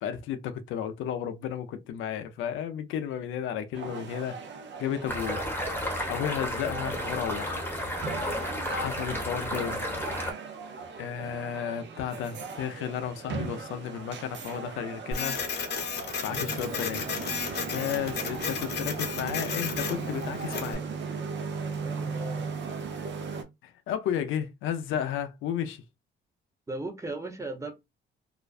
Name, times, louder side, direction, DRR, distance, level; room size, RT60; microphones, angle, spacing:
voice 1, 0.0-4.4 4.8-5.5 6.1-7.7 8.7-9.9 11.0-15.4 16.2-17.1 17.7-20.8 23.6-25.8, left 9 dB, 85° left, 0.4 m, -33 dB
sound 1, 3.7-23.4, right 5 dB, 65° right, 0.6 m, -37 dB
sound 2, 5.1-10.3, left 1 dB, 10° left, 0.8 m, -32 dB
Printer, 15.1-20.8, left 6 dB, 55° left, 0.7 m, -34 dB
voice 2, 21.8-22.5 26.7-27.7, right 2 dB, 15° right, 0.6 m, -37 dB
2.4 x 2.1 x 2.4 m
cardioid pair, 90°, 20 cm